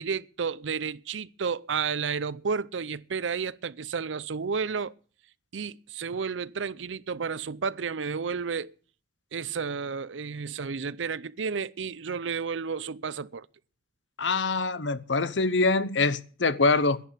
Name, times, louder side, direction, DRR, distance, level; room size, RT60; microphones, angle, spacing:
voice 1, 0.0-4.9 5.5-8.7 9.3-13.5, right 5 dB, 85° right, 0.6 m, -32 dB
voice 2, 14.2-17.0, left 3 dB, 75° left, 0.9 m, -24 dB
11.0 x 11.0 x 8.1 m
head